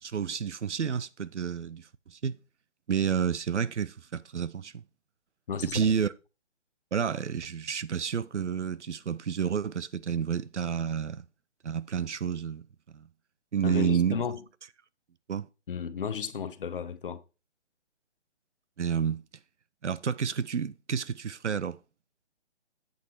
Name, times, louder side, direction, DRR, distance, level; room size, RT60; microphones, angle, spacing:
voice 1, 0.0-2.3 2.9-4.8 5.7-6.1 6.9-11.2 11.6-12.6 12.9-13.1 13.5-14.2 15.3-15.5 18.8-19.2 19.8-21.8, right 7 dB, 80° right, 0.8 m, -30 dB
voice 2, 5.5-5.8 13.6-14.4 15.7-17.2, left 7 dB, 50° left, 0.9 m, -33 dB
8.1 x 6.8 x 4.5 m
figure-of-eight pair, 150°, 34 cm